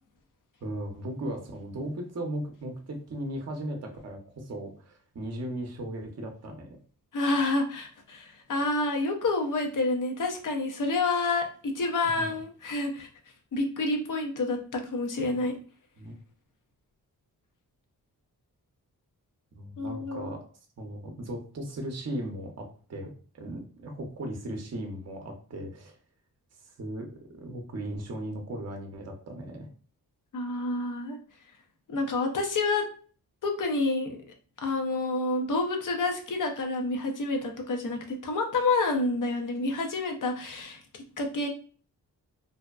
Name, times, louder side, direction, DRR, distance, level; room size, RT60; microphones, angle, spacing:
voice 1, 0.6-6.8 12.0-12.4 16.0-16.1 19.5-20.4 20.8-26.0 26.8-29.7, right 1 dB, 45° right, 3 dB, 0.7 m, -37 dB
voice 2, 7.1-13.1 13.5-15.5 19.8-20.3 30.3-31.2 31.9-32.9 33.4-34.2 34.6-41.5, left 3 dB, 55° left, 4 dB, 0.6 m, -28 dB
2.7 x 2.1 x 2.3 m, 0.42 s
cardioid pair, 45°, 38 cm